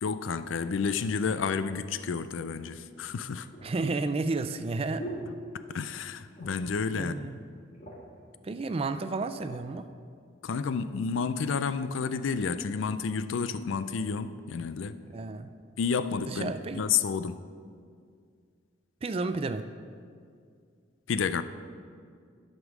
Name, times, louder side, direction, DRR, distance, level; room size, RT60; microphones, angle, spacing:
voice 1, 0.0-3.5 5.5-7.3 10.4-15.0 15.8-17.5 21.1-21.4, left 5 dB, 75° left, 0.4 m, -30 dB
sound 1, 2.9-6.0 6.3-6.8 7.1-7.2 7.5-8.2 8.9-9.7 10.3-10.5, right 1 dB, 35° left, 1.7 m, -45 dB
voice 2, 3.6-5.1 6.9-7.4 8.4-9.9 15.1-15.5 16.3-16.8 19.0-19.7, right 3 dB, 30° right, 0.3 m, -31 dB
11.5 x 5.3 x 6.1 m
head